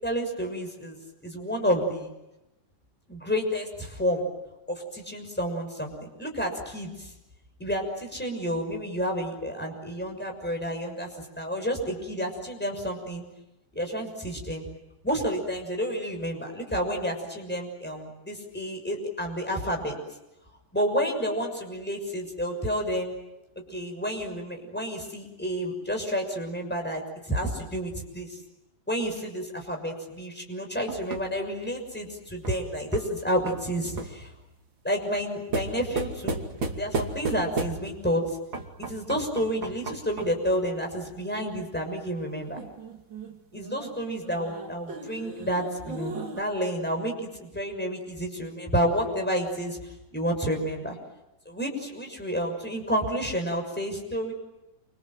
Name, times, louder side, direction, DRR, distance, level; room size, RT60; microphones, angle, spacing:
voice 1, 0.0-2.1 3.1-4.3 4.7-7.1 7.6-13.2 13.7-14.6 15.0-20.0 20.7-23.1 23.7-28.4 28.9-34.3 34.8-36.4 36.7-38.4 38.8-42.6 43.5-49.8 50.1-51.0 51.5-54.3, equal, 5° left, 3 dB, 6.1 m, -30 dB
sound 1, 30.9-34.3 35.5-38.1 38.5-40.5 42.6-46.4, right 3 dB, 35° right, 2.8 m, -35 dB
29.0 x 26.5 x 7.7 m, 0.94 s
omnidirectional pair, 3.8 m